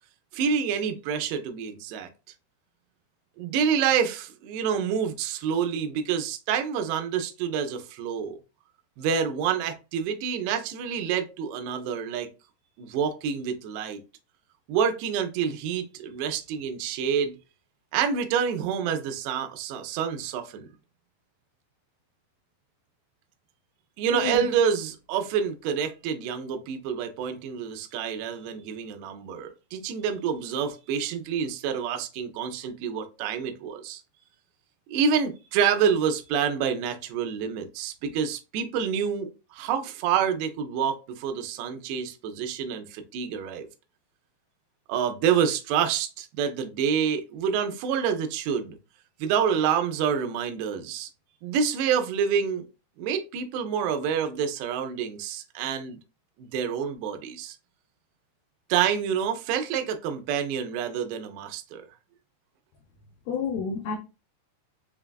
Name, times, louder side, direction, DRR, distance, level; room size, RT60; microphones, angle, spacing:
voice 1, 0.3-2.1 3.4-8.4 9.0-12.3 12.8-14.0 14.7-17.4 17.9-20.7 24.0-34.0 34.9-43.7 44.9-48.8 49.2-51.1 51.4-52.6 53.0-56.0 56.4-57.6 58.7-61.8, right 7 dB, 80° right, 2.7 m, -27 dB
voice 2, 24.1-24.5 63.3-64.0, left 6 dB, 90° left, 2.0 m, -29 dB
6.5 x 2.3 x 2.3 m
omnidirectional pair, 5.0 m